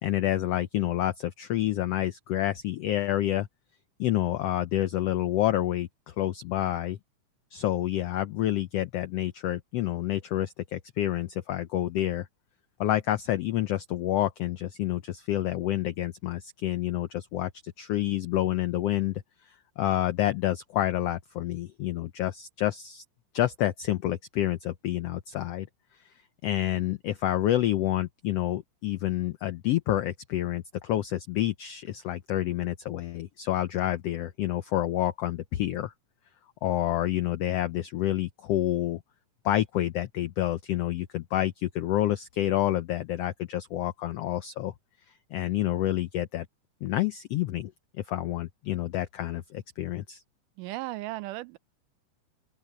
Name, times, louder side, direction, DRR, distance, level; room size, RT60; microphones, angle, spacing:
voice 1, 0.0-3.5 4.0-7.0 7.5-12.3 12.8-19.2 19.8-23.0 23.3-25.7 26.4-35.9 36.6-39.0 39.4-44.7 45.3-46.5 46.8-47.7 48.1-50.2, left 13 dB, 90° left, 1.3 m, -28 dB
voice 2, 50.6-51.6, right 19 dB, 85° right, 2.2 m, -35 dB
open air
omnidirectional pair, 3.7 m